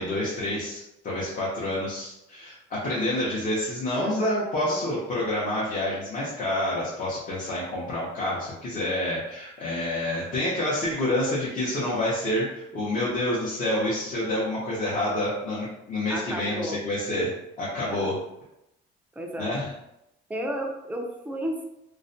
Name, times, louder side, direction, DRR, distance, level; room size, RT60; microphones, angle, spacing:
voice 1, 0.0-17.3 17.6-18.2 19.4-19.7, left 1 dB, 40° left, -6 dB, 0.7 m, -28 dB
voice 2, 16.1-16.8 17.8-18.1 19.2-19.5 20.3-21.6, right 1 dB, 10° right, 1 dB, 0.4 m, -33 dB
2.4 x 2.1 x 2.6 m, 0.85 s
cardioid pair, 125°, 20 cm